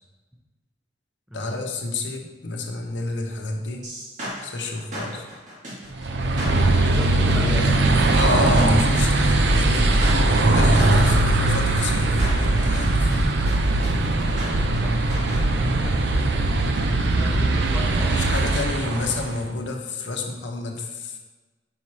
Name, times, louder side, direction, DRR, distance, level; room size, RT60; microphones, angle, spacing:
voice 1, 1.3-3.8 4.4-5.3 8.1-13.1 18.1-21.2, left 2 dB, 80° left, 2 dB, 0.9 m, -29 dB
sound 1, 3.8-15.4, equal, 45° right, 1.9 m, -36 dB
sound 2, 5.9-19.4, right 2 dB, 65° right, 0.6 m, -20 dB
voice 2, 6.9-7.7 14.8-16.2 17.0-18.7, equal, 5° right, -3 dB, 0.7 m, -35 dB
5.6 x 4.8 x 4.3 m, 1.2 s
head